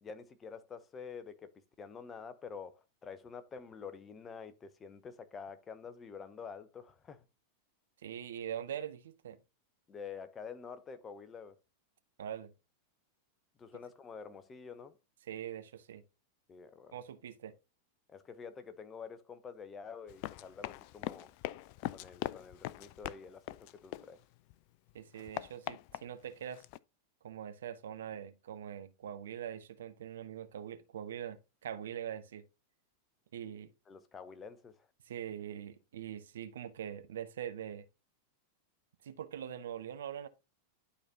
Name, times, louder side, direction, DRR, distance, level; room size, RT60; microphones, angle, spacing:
voice 1, 0.0-1.5 1.8-7.2 9.9-11.6 13.6-15.0 16.5-17.0 18.1-21.3 21.9-24.2 33.9-34.9, left 6 dB, 20° left, 0.8 m, -48 dB
voice 2, 8.0-9.4 12.2-12.5 15.3-16.0 16.9-17.5 24.9-26.6 27.2-32.4 33.3-33.7 35.1-37.9 39.0-40.3, right 9 dB, 60° right, 0.7 m, -43 dB
Run, 20.1-24.5 24.9-26.8, left 17 dB, 45° left, 0.3 m, -42 dB
11.5 x 4.1 x 2.8 m
figure-of-eight pair, 90°, 0 cm